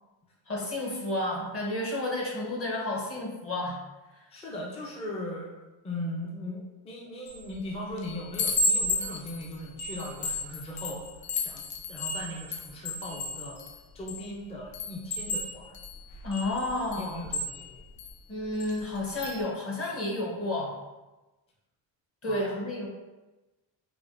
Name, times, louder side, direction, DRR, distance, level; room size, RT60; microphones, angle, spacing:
voice 1, 0.5-3.8 16.2-17.2 18.3-20.7 22.2-22.9, left 1 dB, 30° left, -2 dB, 0.9 m, -31 dB
voice 2, 4.3-5.5 5.8-13.6 13.9-15.8 17.0-17.8 22.3-22.5, left 1 dB, 15° left, -3 dB, 0.5 m, -39 dB
Chime, 7.3-7.6 8.0-14.3 14.7-18.1 18.6-18.8 19.1-19.4, left 2 dB, 65° left, 0.7 m, -33 dB
4.9 x 2.2 x 2.5 m, 1.1 s
cardioid pair, 130°, 47 cm